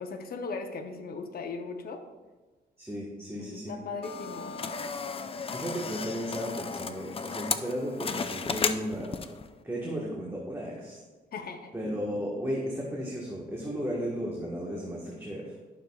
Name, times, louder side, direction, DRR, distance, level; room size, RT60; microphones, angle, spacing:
voice 1, 0.0-2.0 3.3-4.6 11.3-11.7, left 4 dB, 55° left, 5 dB, 0.8 m, -38 dB
voice 2, 2.8-3.8 5.5-9.1 9.6-11.0 11.7-15.5, equal, 15° right, -4 dB, 1.3 m, -34 dB
sound 1, 4.0-9.5, left 5 dB, 30° left, 0.5 m, -34 dB
12.0 x 6.4 x 2.3 m, 1.2 s
cardioid pair, 100°, 18 cm